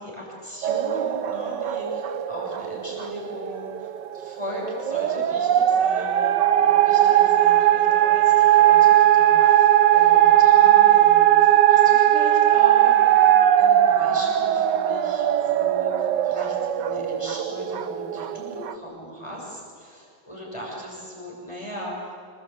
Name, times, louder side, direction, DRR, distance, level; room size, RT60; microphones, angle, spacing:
voice 1, 0.0-22.1, equal, 15° left, -3 dB, 7.2 m, -38 dB
sound 1, 0.6-18.7, right 12 dB, 65° right, 1.4 m, -19 dB
29.0 x 20.5 x 9.1 m, 2.4 s
omnidirectional pair, 2.2 m